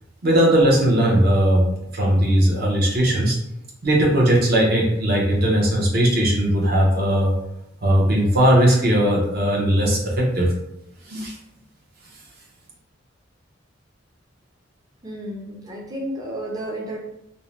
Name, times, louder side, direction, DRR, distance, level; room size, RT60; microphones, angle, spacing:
voice 1, 0.2-1.6 1.9-3.4 3.8-7.3 7.8-10.5 11.1-11.4, right 1 dB, 50° right, -2 dB, 0.7 m, -18 dB
voice 2, 15.0-17.0, right 1 dB, 20° right, -2 dB, 0.5 m, -31 dB
2.6 x 2.0 x 3.0 m, 0.82 s
head